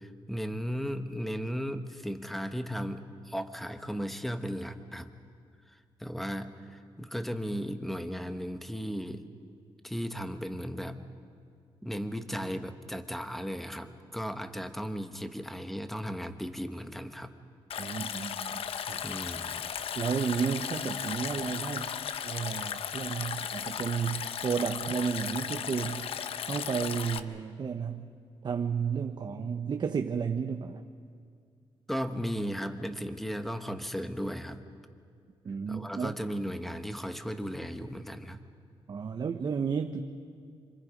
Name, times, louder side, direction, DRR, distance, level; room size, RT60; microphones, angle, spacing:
voice 1, 0.0-5.1 5.7-9.3 9.8-11.0 11.8-17.3 19.0-19.6 31.9-34.6 35.7-38.4, equal, ahead, 8 dB, 1.4 m, -36 dB
Stream, 17.7-27.2, left 8 dB, 70° left, 0.9 m, -36 dB
voice 2, 17.8-18.6 18.9-19.0 19.9-21.9 22.2-26.1 26.5-28.1 28.4-30.8 35.4-36.1 38.9-40.0, right 6 dB, 45° right, 5 dB, 1.0 m, -32 dB
27.5 x 25.5 x 5.3 m, 2.2 s
cardioid pair, 95°, 10 cm